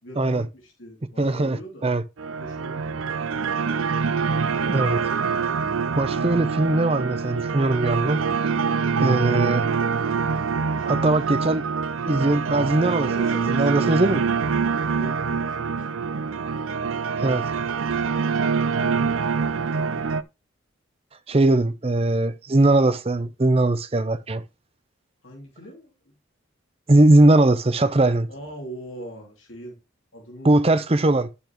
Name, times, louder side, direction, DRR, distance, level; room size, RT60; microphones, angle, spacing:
voice 1, 0.0-1.9 2.4-3.6 10.6-11.3 12.7-14.4 15.0-16.1 25.2-26.1 28.3-29.8 30.1-30.8, equal, 75° left, 2.7 m, -41 dB
voice 2, 1.2-1.6 1.8-2.0 4.4-5.5 6.0-8.2 9.0-9.6 10.8-11.6 12.1-13.1 13.3-14.2 17.2-17.4 21.3-24.4 26.9-28.3 30.4-31.3, right 2 dB, 30° right, 0.6 m, -20 dB
sound 1, 2.2-20.2, right 5 dB, 85° right, 0.5 m, -25 dB
10.0 x 7.0 x 3.0 m
head